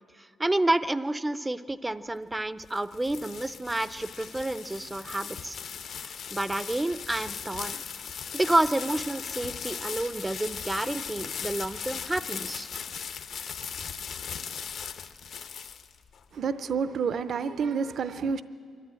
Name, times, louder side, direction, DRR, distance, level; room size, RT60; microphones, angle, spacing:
voice 1, 0.4-5.6 6.0-7.8 8.3-12.7, right 2 dB, 10° right, 15 dB, 0.5 m, -29 dB
sound 1, 2.4-16.2, left 7 dB, 60° left, 0.9 m, -38 dB
voice 2, 16.3-18.4, right 6 dB, 55° right, 13 dB, 0.6 m, -29 dB
24.0 x 12.0 x 8.9 m, 2.2 s
cardioid pair, 125°, 0 cm